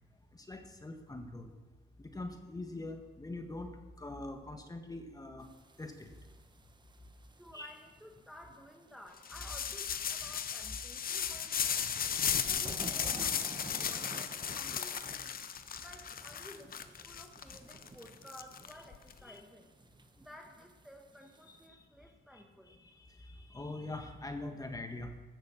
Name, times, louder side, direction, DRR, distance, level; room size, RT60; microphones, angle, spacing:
voice 1, 0.4-1.5 2.0-3.7 4.0-5.5 5.8-6.1 7.5-7.7 10.2-10.3 11.9-12.4 19.3-19.4 21.5-21.8 22.3-25.2, left 2 dB, 20° left, 5 dB, 1.7 m, -44 dB
sound 1, 5.4-21.7, right 3 dB, 20° right, 0.9 m, -54 dB
voice 2, 7.4-11.8 12.3-15.4 15.8-19.7 20.2-22.7, equal, ahead, 1 dB, 1.3 m, -54 dB
sound 2, 9.2-19.1, left 8 dB, 45° left, 0.8 m, -36 dB
15.5 x 6.6 x 6.4 m, 1.2 s
cardioid pair, 90°, 20 cm